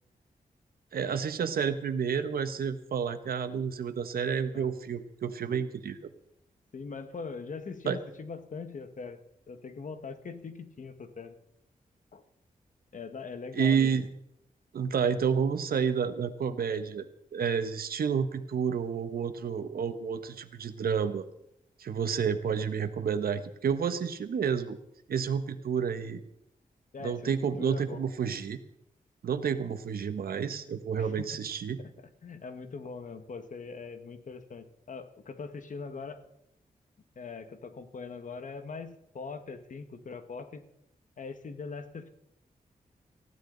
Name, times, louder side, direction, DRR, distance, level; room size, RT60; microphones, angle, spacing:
voice 1, 0.9-6.1 7.8-8.0 13.5-14.1 14.7-17.1 17.3-21.2 21.8-24.8 25.1-26.2 27.0-28.6 29.2-31.8, right 7 dB, 90° right, 9 dB, 1.3 m, -30 dB
voice 2, 6.7-9.2 9.5-11.4 12.1-12.2 12.9-14.0 26.9-28.1 31.0-31.3 31.8-36.2 37.1-40.6 41.2-42.1, left 4 dB, 60° left, 9 dB, 1.6 m, -41 dB
19.0 x 15.0 x 4.0 m, 0.81 s
wide cardioid pair, 95°, 15 cm